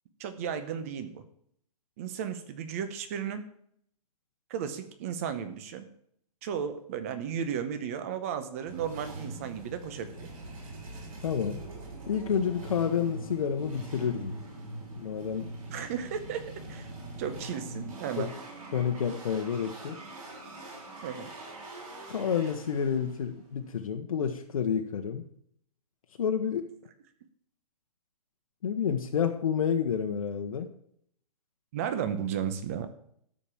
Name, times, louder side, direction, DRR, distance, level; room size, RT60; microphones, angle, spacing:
voice 1, 0.2-1.2 2.0-3.4 4.5-5.9 6.4-10.3 15.7-16.4 16.7-18.3 21.0-21.3 31.7-32.9, right 8 dB, 20° right, 10 dB, 0.8 m, -34 dB
sound 1, 8.6-23.9, right 2 dB, 55° right, 5.8 m, -43 dB
voice 2, 11.2-11.6 12.1-14.3 15.0-15.5 18.2-18.3 18.7-20.0 22.1-25.2 26.2-26.7 28.6-30.7, left 7 dB, 60° left, 4 dB, 1.1 m, -29 dB
12.5 x 5.1 x 7.3 m, 0.68 s
hypercardioid pair, 175°, 20 cm